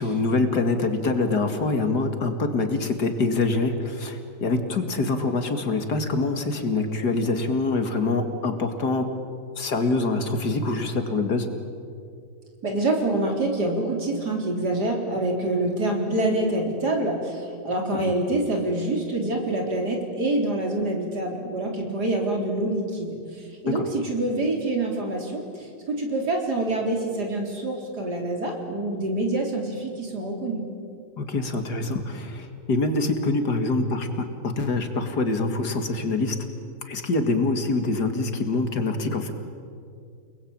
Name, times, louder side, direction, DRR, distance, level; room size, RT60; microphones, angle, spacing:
voice 1, 0.0-9.1 9.6-11.5 23.6-23.9 31.2-36.4 36.9-39.3, left 3 dB, 65° left, 6 dB, 2.7 m, -25 dB
voice 2, 12.6-30.6, right 2 dB, 65° right, 1 dB, 4.4 m, -26 dB
30.0 x 20.0 x 8.9 m, 2.4 s
omnidirectional pair, 1.9 m